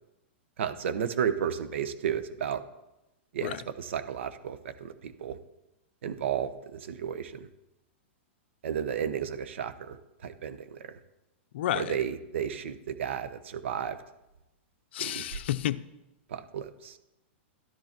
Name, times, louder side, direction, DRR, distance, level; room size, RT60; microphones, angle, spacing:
voice 1, 0.6-2.6 3.3-5.4 6.0-7.5 8.6-10.9 11.7-14.0 15.0-15.4 16.3-17.0, right 8 dB, 75° right, 1.0 m, -33 dB
voice 2, 11.5-12.0 14.9-15.8, left 13 dB, 65° left, 0.5 m, -30 dB
12.0 x 11.0 x 4.5 m
hypercardioid pair, 150°, 7 cm